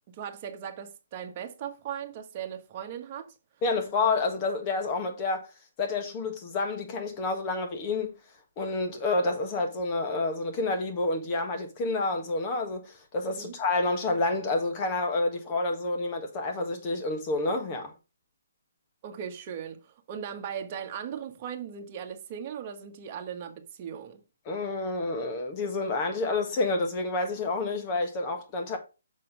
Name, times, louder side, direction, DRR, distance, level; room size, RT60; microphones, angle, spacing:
voice 1, 0.1-3.3 13.3-13.6 19.0-24.2, right 8 dB, 35° right, 1.3 m, -38 dB
voice 2, 3.6-5.5 5.8-8.1 8.6-17.9 24.4-28.8, left 3 dB, 30° left, 1.6 m, -29 dB
6.5 x 4.2 x 5.0 m
hypercardioid pair, 145°, 0 cm